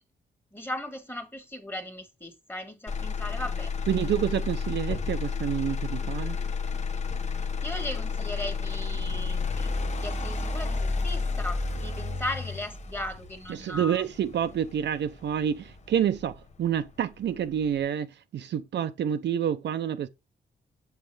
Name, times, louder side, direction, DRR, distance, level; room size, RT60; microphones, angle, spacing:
voice 1, 0.5-4.1 7.3-9.7 10.0-14.0, left 1 dB, 10° left, 1.7 m, -37 dB
Motor vehicle (road), 2.9-16.9 17.3-17.9, left 4 dB, 40° left, 0.9 m, -31 dB
voice 2, 3.9-6.4 13.5-20.1, right 9 dB, 75° right, 0.6 m, -28 dB
7.3 x 5.7 x 3.3 m
cardioid pair, 100°, 18 cm